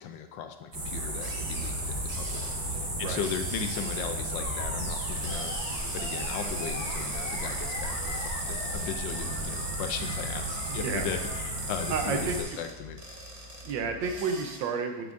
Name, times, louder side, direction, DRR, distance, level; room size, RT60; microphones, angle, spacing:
voice 1, 0.0-5.5 5.9-13.0, left 7 dB, 85° left, 7 dB, 1.3 m, -37 dB
sound 1, 0.7-12.4, right 1 dB, 65° right, 2.3 m, -33 dB
sound 2, 1.1-14.6, right 1 dB, 30° right, 0.7 m, -45 dB
Animal, 4.3-12.2, left 3 dB, 60° left, 1.2 m, -42 dB
voice 2, 10.7-11.1 11.9-12.6 13.6-15.1, right 5 dB, 90° right, 5 dB, 1.5 m, -31 dB
8.9 x 6.8 x 2.5 m, 1.1 s
omnidirectional pair, 2.0 m